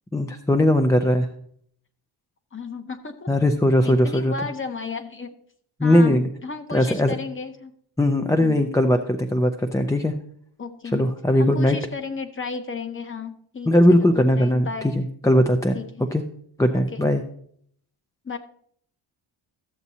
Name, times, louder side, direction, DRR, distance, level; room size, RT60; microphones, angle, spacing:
voice 1, 0.1-1.3 3.3-4.3 5.8-6.3 6.7-7.1 8.0-9.0 9.3-10.1 10.9-11.8 13.7-14.7 15.0-15.8 16.1-16.2 16.6-17.2, left 1 dB, 5° left, 6 dB, 0.4 m, -19 dB
voice 2, 2.5-3.3 3.8-5.4 5.8-7.7 8.4-8.7 10.6-11.1 11.4-14.9 15.7-16.1 16.7-17.0 18.2-18.4, left 4 dB, 25° left, 8 dB, 0.8 m, -34 dB
13.5 x 7.2 x 2.7 m, 0.64 s
cardioid pair, 120°, 50 cm